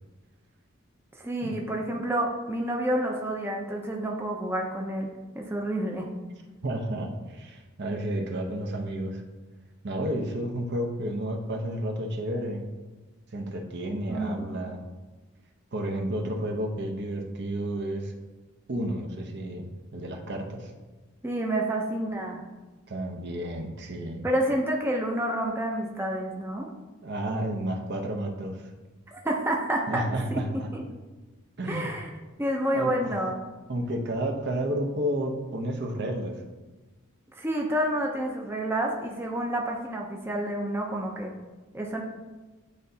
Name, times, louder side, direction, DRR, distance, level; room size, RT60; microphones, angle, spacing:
voice 1, 1.2-6.1 14.1-14.5 21.2-22.4 24.2-26.7 29.1-30.1 30.3-30.4 30.7-30.8 31.6-32.1 32.4-33.4 37.3-41.3 41.7-42.0, right 1 dB, 10° right, 0 dB, 0.6 m, -29 dB
voice 2, 6.6-9.2 9.8-12.7 13.3-14.8 15.7-18.1 18.7-20.7 22.9-24.2 27.0-28.7 29.9-30.7 31.6-31.9 32.7-33.0 33.7-36.3, right 1 dB, 55° right, 3 dB, 0.8 m, -31 dB
9.8 x 3.9 x 2.8 m, 1.2 s
head